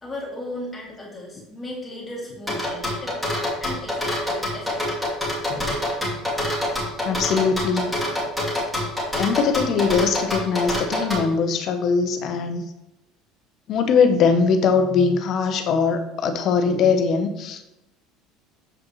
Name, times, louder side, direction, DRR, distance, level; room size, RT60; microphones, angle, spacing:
voice 1, 0.0-3.3 3.6-5.0, left 1 dB, 15° left, -4 dB, 2.3 m, -36 dB
sound 1, 2.5-11.2, left 1 dB, ahead, 2.3 m, -25 dB
voice 2, 7.0-7.9 9.2-12.6 13.7-17.6, left 5 dB, 45° left, 8 dB, 0.8 m, -21 dB
7.4 x 5.2 x 3.1 m, 0.90 s
cardioid pair, 130°, 0 cm